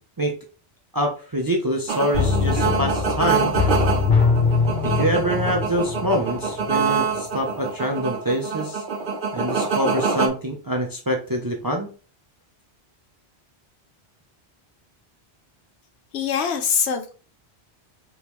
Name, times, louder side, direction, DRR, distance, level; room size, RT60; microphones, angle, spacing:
voice 1, 0.9-3.6 4.8-8.8 9.3-11.9, equal, 30° right, 0.4 m, -25 dB
sound 1, 1.9-10.3, right 5 dB, 60° right, 0.7 m, -25 dB
sound 2, 2.1-6.8 7.2-7.3, left 4 dB, 70° left, 1.4 m, -22 dB
voice 2, 16.1-17.1, left 7 dB, 90° left, 1.0 m, -23 dB
3.4 x 2.9 x 3.0 m
omnidirectional pair, 1.1 m